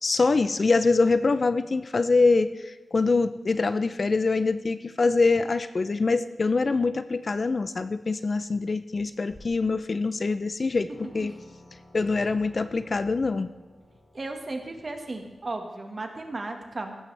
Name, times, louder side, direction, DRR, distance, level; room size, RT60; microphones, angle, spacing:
voice 1, 0.0-11.3 11.9-13.5, left 3 dB, 45° left, 12 dB, 0.5 m, -24 dB
sound 1, 9.3-9.8 10.3-10.4 10.9-15.6, left 1 dB, 25° left, 3.8 m, -54 dB
voice 2, 14.1-17.0, right 2 dB, 40° right, 4 dB, 1.6 m, -35 dB
15.5 x 12.5 x 3.4 m, 1.2 s
wide cardioid pair, 125°, 0 cm